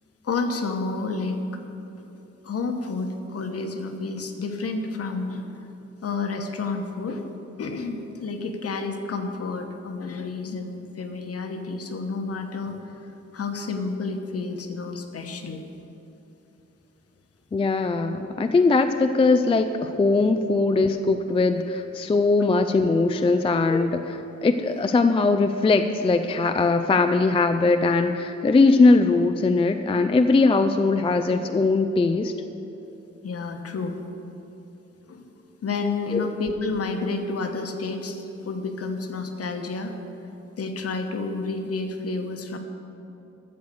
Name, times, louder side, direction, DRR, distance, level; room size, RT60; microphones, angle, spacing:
voice 1, 0.2-1.4 2.0-2.1 2.4-5.5 6.0-7.3 7.6-12.8 13.3-15.6 33.2-34.0 35.1-35.3 35.6-39.9 40.6-42.6, left 3 dB, 55° left, 5 dB, 1.1 m, -30 dB
voice 2, 17.5-32.3 36.1-36.3, left 3 dB, 20° left, 7 dB, 0.3 m, -20 dB
13.0 x 7.9 x 7.0 m, 2.9 s
wide cardioid pair, 170°, 29 cm